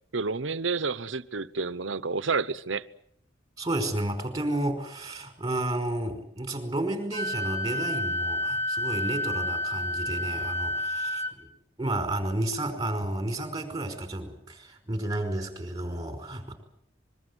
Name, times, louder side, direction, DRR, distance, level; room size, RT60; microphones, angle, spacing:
voice 1, 0.1-2.9, right 4 dB, 75° right, 1.0 m, -29 dB
voice 2, 3.6-11.5 11.8-16.6, right 1 dB, 20° right, 5.0 m, -31 dB
Wind instrument woodwind instrument, 7.1-11.3, left 1 dB, 30° left, 4.1 m, -30 dB
24.5 x 22.5 x 8.1 m
head